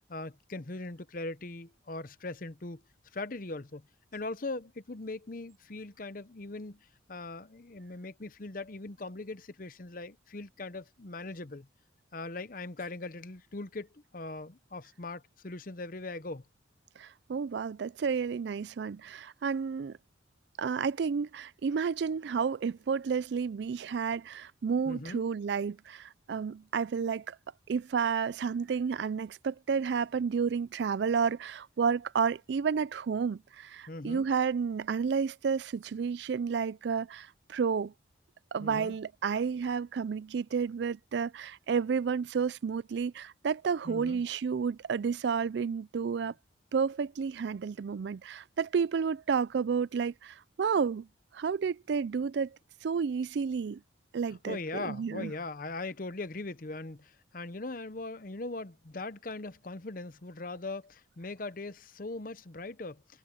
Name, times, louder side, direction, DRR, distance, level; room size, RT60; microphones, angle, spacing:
voice 1, 0.1-2.8 3.1-3.9 4.1-11.7 12.1-16.4 24.9-25.2 33.9-34.3 38.6-39.0 43.8-44.2 54.4-63.2, left 2 dB, 45° left, 0.8 m, -40 dB
voice 2, 17.0-20.0 20.6-27.4 27.7-37.9 38.5-46.3 46.7-51.1 51.3-53.8 54.1-55.3, right 6 dB, 65° right, 0.4 m, -31 dB
head